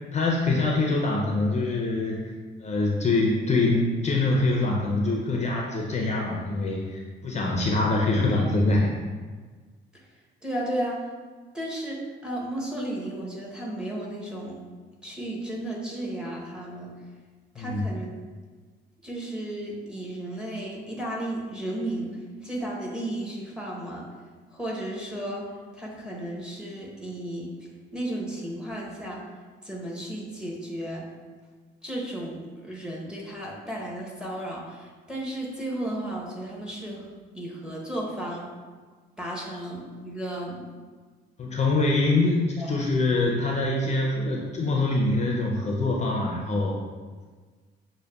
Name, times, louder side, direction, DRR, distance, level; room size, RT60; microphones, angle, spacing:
voice 1, 0.1-2.2 2.6-8.9 17.6-17.8 41.4-46.8, left 2 dB, 35° left, -1 dB, 0.5 m, -24 dB
voice 2, 10.4-11.0 11.5-14.6 15.0-16.9 17.5-18.1 19.0-24.1 24.5-27.5 27.9-29.2 29.6-31.1 31.8-37.1 37.3-38.5 39.2-40.7 42.6-42.8, right 1 dB, 5° right, -3 dB, 0.8 m, -34 dB
6.2 x 2.1 x 2.3 m, 1.4 s
cardioid pair, 90°, 20 cm